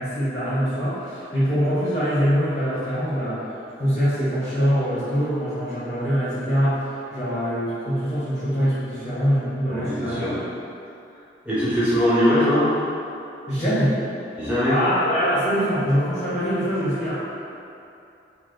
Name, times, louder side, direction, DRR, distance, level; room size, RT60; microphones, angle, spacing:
voice 1, 0.0-3.4 3.8-10.3 13.5-13.9 14.7-17.1, equal, 25° left, -12 dB, 0.9 m, -23 dB
voice 2, 9.7-10.4 11.4-12.7 14.3-14.8, equal, 10° right, -12 dB, 1.1 m, -21 dB
2.9 x 2.8 x 3.7 m, 2.7 s
head